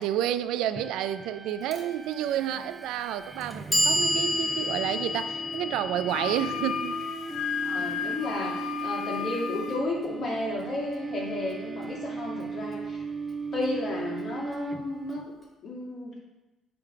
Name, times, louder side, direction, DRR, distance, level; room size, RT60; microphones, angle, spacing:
voice 1, 0.0-7.0, right 11 dB, 85° right, 0.3 m, -30 dB
sound 1, 0.8-15.2, right 5 dB, 15° right, 0.5 m, -38 dB
Clock, 1.7-1.8 2.8-2.9 3.4-9.5, left 1 dB, 15° left, 1.4 m, -31 dB
Wind instrument woodwind instrument, 6.1-9.8, left 8 dB, 75° left, 0.5 m, -33 dB
voice 2, 7.6-13.0 13.5-15.3 15.6-16.2, left 2 dB, 45° left, 2.5 m, -33 dB
9.2 x 3.4 x 4.8 m
cardioid pair, 100°, 0 cm